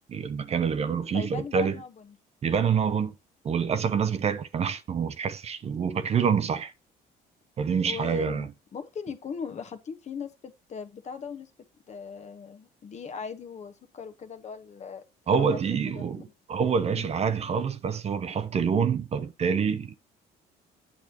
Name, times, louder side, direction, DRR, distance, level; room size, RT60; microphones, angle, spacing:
voice 1, 0.1-1.8 2.4-3.1 3.4-6.7 7.6-8.5 15.3-20.0, right 6 dB, 40° right, 0.7 m, -26 dB
voice 2, 1.1-1.9 7.8-11.5 11.9-16.2 16.8-17.1, left 6 dB, 40° left, 1.1 m, -39 dB
8.5 x 6.3 x 2.9 m
cardioid pair, 110°, 17 cm